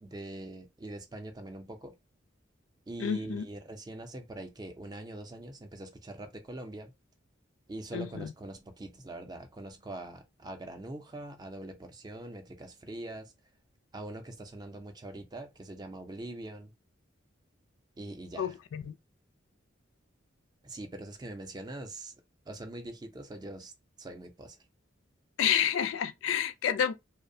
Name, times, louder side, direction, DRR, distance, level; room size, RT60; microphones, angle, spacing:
voice 1, 0.0-1.9 2.9-6.9 7.7-13.3 13.9-16.7 18.0-18.6 20.6-22.1 22.5-23.7 24.0-24.6, right 1 dB, 20° right, 0.4 m, -43 dB
voice 2, 3.0-3.4 7.9-8.3 18.4-19.0 25.4-26.9, left 8 dB, 85° left, 0.3 m, -29 dB
2.6 x 2.0 x 2.5 m
head